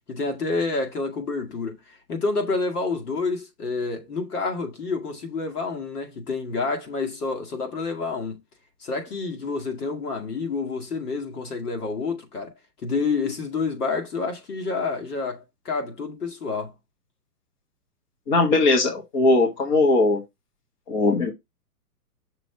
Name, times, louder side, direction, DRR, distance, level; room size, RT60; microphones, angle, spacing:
voice 1, 0.1-8.4 8.8-12.5 12.8-16.7, left 4 dB, 70° left, 2.1 m, -28 dB
voice 2, 18.3-20.2 20.9-21.3, left 2 dB, 25° left, 1.6 m, -19 dB
6.1 x 3.5 x 5.7 m
hypercardioid pair, 170°, 47 cm